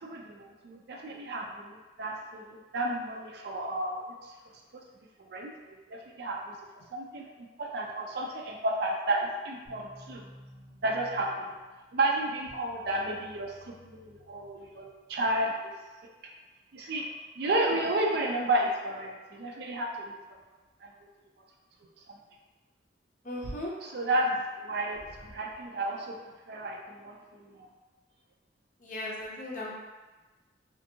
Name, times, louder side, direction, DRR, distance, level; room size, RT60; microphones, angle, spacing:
voice 1, 0.0-4.3 5.2-6.6 6.9-7.2 7.6-10.2 10.8-11.6 11.9-15.5 16.7-17.1 17.4-20.2 20.8-20.9 22.1-22.2 23.8-26.2 26.5-27.7, right 1 dB, 60° right, 1 dB, 0.4 m, -32 dB
sound 1, 9.7-15.3, equal, 85° right, 1.3 m, -54 dB
voice 2, 23.2-23.7 28.8-29.7, left 1 dB, 45° left, -5 dB, 0.6 m, -36 dB
2.6 x 2.5 x 2.7 m, 1.2 s
head